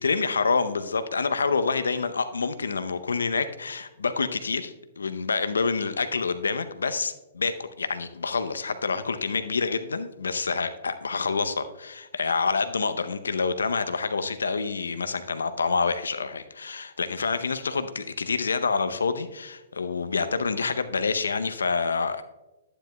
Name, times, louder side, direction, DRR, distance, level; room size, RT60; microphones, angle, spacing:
voice 1, 0.0-22.2, left 4 dB, 85° left, 11 dB, 0.6 m, -27 dB
11.5 x 9.8 x 2.2 m, 1.0 s
hypercardioid pair, 125°, 0 cm